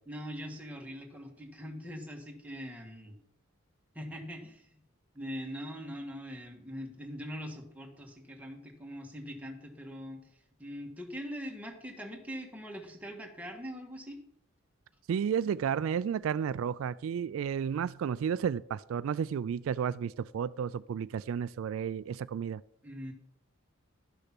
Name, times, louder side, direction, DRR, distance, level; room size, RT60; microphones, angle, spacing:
voice 1, 0.1-3.1 3.9-4.8 5.1-14.2 22.8-23.1, equal, 5° right, 1.6 m, -42 dB
voice 2, 15.1-22.6, right 7 dB, 75° right, 0.3 m, -32 dB
12.0 x 6.6 x 6.0 m
head